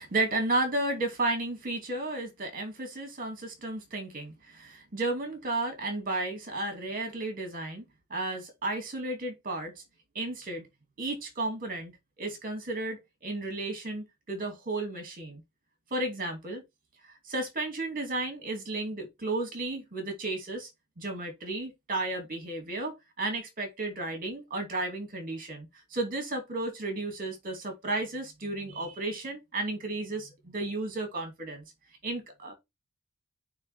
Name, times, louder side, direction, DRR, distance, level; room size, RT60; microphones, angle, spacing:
voice 1, 0.0-7.8 8.1-9.8 10.1-10.7 11.0-11.9 12.2-15.4 15.9-16.6 17.0-20.7 21.0-31.6 32.0-32.5, right 2 dB, 40° right, 2.6 m, -33 dB
8.7 x 3.6 x 3.6 m
head